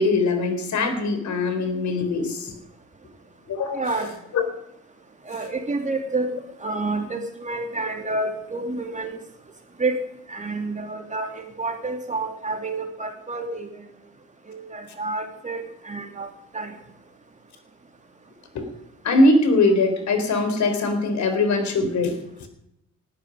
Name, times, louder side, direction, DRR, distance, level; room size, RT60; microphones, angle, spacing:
voice 1, 0.0-2.5 3.5-3.9 4.3-4.4 18.5-18.7 19.0-22.1, left 2 dB, 70° left, 7 dB, 4.1 m, -21 dB
voice 2, 3.7-4.1 5.3-6.3 6.6-9.2 9.8-10.0 10.3-13.7 14.5-16.7, right 3 dB, 25° right, 4 dB, 3.2 m, -29 dB
19.5 x 12.5 x 5.3 m, 0.78 s
cardioid pair, 90°, 30 cm